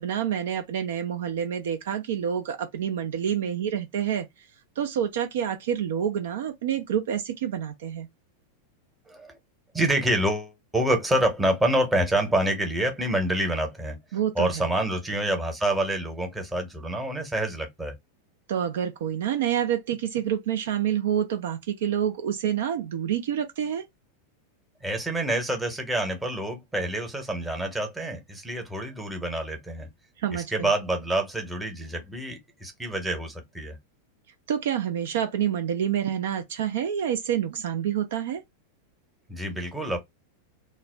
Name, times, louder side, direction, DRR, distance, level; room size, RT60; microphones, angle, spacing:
voice 1, 0.0-4.5 4.8-8.1 14.1-14.6 18.5-23.8 30.2-30.7 34.5-38.4, right 9 dB, 55° right, 0.3 m, -28 dB
voice 2, 9.7-14.0 14.3-18.0 24.8-29.9 30.3-33.8 39.3-40.0, right 1 dB, 5° right, 0.8 m, -27 dB
2.3 x 2.0 x 3.2 m
figure-of-eight pair, 90°, 0 cm